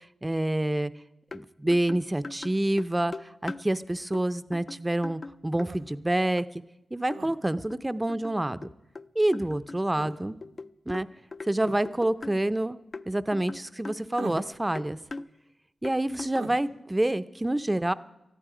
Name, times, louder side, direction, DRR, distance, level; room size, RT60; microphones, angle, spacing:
voice 1, 0.2-0.9 1.3-3.1 3.4-6.5 6.9-8.7 9.2-10.3 10.9-11.1 11.5-12.8 13.1-15.0 15.8-17.9, right 1 dB, 15° right, 13 dB, 0.6 m, -27 dB
sound 1, 1.3-1.4 1.7-3.7 4.1-4.3 4.5-5.7 6.4-6.5 7.1-7.2 7.7-9.1 9.3-12.4 12.9-14.5 14.8-15.3 15.8-16.6, left 3 dB, 40° left, 0.5 m, -40 dB
sound 2, 5.7-5.9 7.1-7.3 9.9-10.2 11.6-11.8 14.2-14.6 16.4-16.6, right 4 dB, 90° right, 1.1 m, -40 dB
19.5 x 14.0 x 4.9 m, 0.90 s
wide cardioid pair, 100°, 0 cm